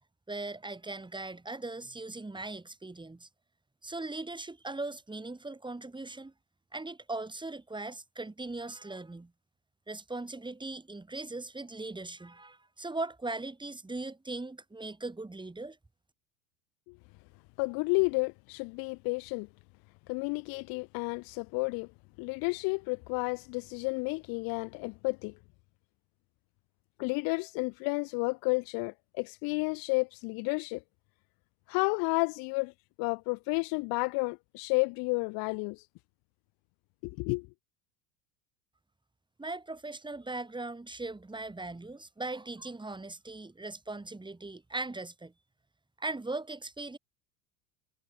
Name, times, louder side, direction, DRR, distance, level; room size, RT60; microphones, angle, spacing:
voice 1, 0.3-3.3 3.8-6.3 6.7-9.3 9.9-15.8 39.4-45.3 46.0-47.0, right 2 dB, 10° right, 6.8 m, -39 dB
voice 2, 17.6-19.5 20.1-21.9 22.2-25.3 27.0-30.8 31.7-32.7 33.0-35.8 37.0-37.5, left 30 dB, 55° left, 1.4 m, -31 dB
hypercardioid pair, 75°, 42 cm